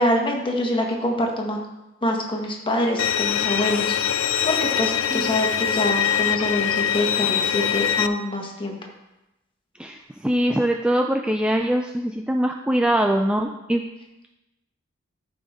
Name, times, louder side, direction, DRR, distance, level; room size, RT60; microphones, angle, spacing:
voice 1, 0.0-1.6 2.0-8.8, left 1 dB, 25° left, 1 dB, 1.4 m, -25 dB
Bowed string instrument, 3.0-8.1, left 9 dB, 75° left, 0.4 m, -23 dB
voice 2, 9.8-13.8, right 1 dB, 5° right, 3 dB, 0.3 m, -23 dB
13.0 x 5.2 x 3.6 m, 0.96 s
head